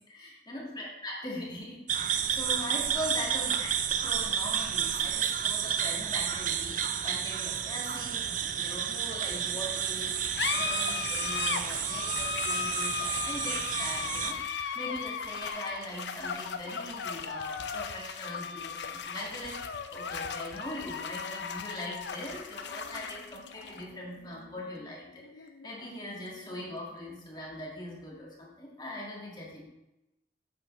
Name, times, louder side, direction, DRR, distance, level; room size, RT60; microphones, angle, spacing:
voice 1, 0.1-3.7 4.0-29.6, left 1 dB, 25° left, -3 dB, 1.9 m, -41 dB
sound 1, 1.9-14.3, right 8 dB, 50° right, 0.5 m, -31 dB
sound 2, 9.9-26.9, left 6 dB, 80° left, 0.6 m, -37 dB
8.5 x 7.9 x 3.2 m, 0.93 s
head